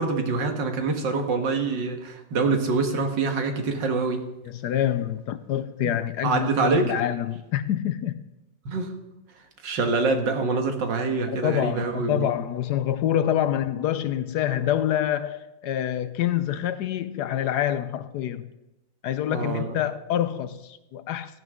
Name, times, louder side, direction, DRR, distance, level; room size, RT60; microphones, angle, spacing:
voice 1, 0.0-4.2 5.8-5.9 6.2-7.0 8.7-9.0 9.6-12.3 19.3-19.8, right 3 dB, 75° right, 2.1 m, -25 dB
voice 2, 4.5-8.2 11.4-18.5 19.0-21.4, left 11 dB, 70° left, 1.1 m, -26 dB
16.5 x 12.5 x 3.7 m
omnidirectional pair, 2.0 m